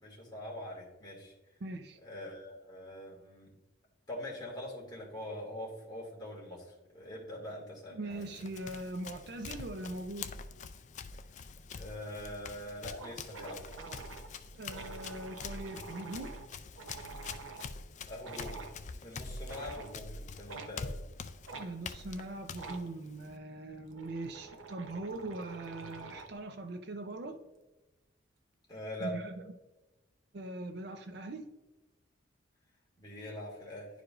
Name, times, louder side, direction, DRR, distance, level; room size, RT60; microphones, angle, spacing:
voice 1, 0.0-1.3 2.0-3.5 4.1-8.2 11.8-13.6 18.1-18.5 19.0-21.0 28.7-29.1 33.0-33.9, left 1 dB, 20° left, -4 dB, 1.9 m, -43 dB
voice 2, 1.6-2.0 7.9-10.3 14.5-16.4 21.6-27.4 29.0-29.5 30.3-31.4, right 2 dB, 55° right, 7 dB, 0.5 m, -41 dB
Run, 8.1-23.4, left 4 dB, 35° left, 0.3 m, -45 dB
sound 1, 12.9-17.7 18.2-18.8 19.4-20.0 20.5-20.7 21.5-21.7 22.5-22.9 23.6-26.4, right 3 dB, 80° right, 0.8 m, -47 dB
11.0 x 4.8 x 2.5 m, 1.1 s
head